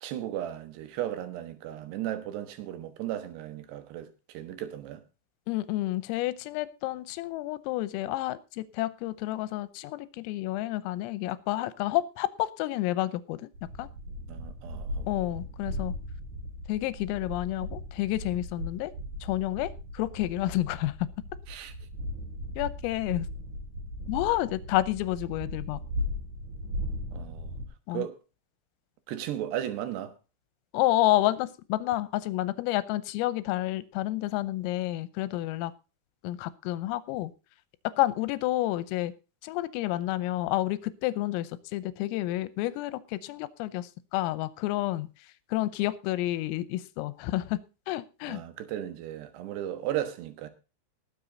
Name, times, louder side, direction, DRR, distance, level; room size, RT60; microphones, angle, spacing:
voice 1, 0.0-5.0 14.3-15.1 21.5-21.7 27.1-27.5 27.9-28.2 29.1-30.1 48.3-50.5, right 12 dB, 70° right, 2.8 m, -35 dB
voice 2, 5.5-13.5 13.8-13.9 15.1-16.0 16.7-18.9 19.2-21.1 22.6-23.3 24.1-25.8 27.9-28.1 30.7-35.7 36.2-37.3 38.0-39.1 39.4-45.1 45.5-47.6 47.9-48.4, left 16 dB, 90° left, 3.5 m, -30 dB
sound 1, 13.5-27.7, left 1 dB, 40° right, 3.8 m, -37 dB
20.0 x 7.6 x 3.9 m
omnidirectional pair, 5.9 m